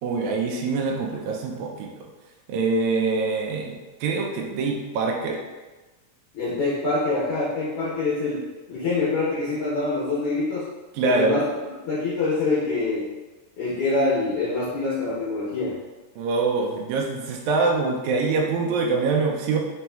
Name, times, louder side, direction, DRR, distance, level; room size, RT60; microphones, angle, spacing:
voice 1, 0.0-1.9 2.5-5.4 10.9-11.4 16.2-19.6, right 4 dB, 85° right, 0 dB, 1.6 m, -24 dB
voice 2, 6.3-8.4 8.7-10.7 11.0-11.5 11.8-13.1 13.6-15.8, left 3 dB, 70° left, -9 dB, 1.4 m, -25 dB
4.2 x 4.2 x 2.2 m, 1.2 s
omnidirectional pair, 3.8 m